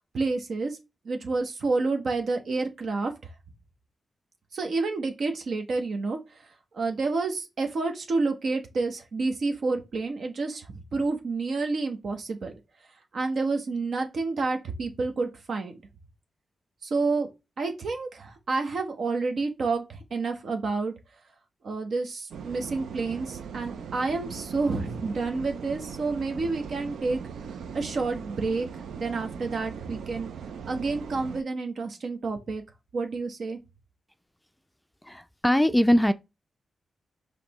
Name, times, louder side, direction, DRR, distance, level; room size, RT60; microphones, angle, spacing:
voice 1, 0.1-0.8 1.0-3.1 4.5-6.2 6.7-10.6 10.9-12.5 13.1-15.8 16.8-17.3 17.6-20.9 21.6-27.2 27.7-28.7 29.0-30.3 30.7-32.6 32.9-33.6, right 3 dB, 65° right, 0.9 m, -29 dB
sound 1, 22.3-31.4, right 6 dB, 85° right, 0.4 m, -39 dB
voice 2, 35.0-36.1, equal, 10° left, 0.4 m, -21 dB
5.1 x 3.2 x 3.0 m
supercardioid pair, 50°, 0 cm